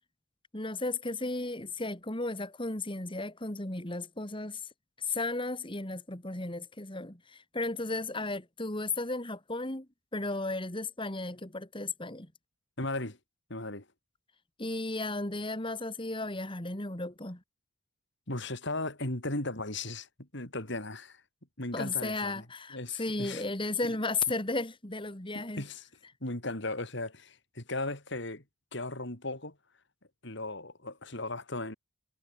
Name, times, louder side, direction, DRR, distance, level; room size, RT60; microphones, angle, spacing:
voice 1, 0.5-4.6 5.0-9.9 10.1-12.3 14.6-17.4 21.7-25.6, left 2 dB, 25° left, 2.4 m, -34 dB
voice 2, 12.8-13.2 13.5-13.8 18.3-20.1 20.3-21.2 21.6-22.4 22.7-23.4 25.3-25.9 26.2-28.4 28.7-29.5 30.2-31.8, left 2 dB, 60° left, 4.5 m, -36 dB
head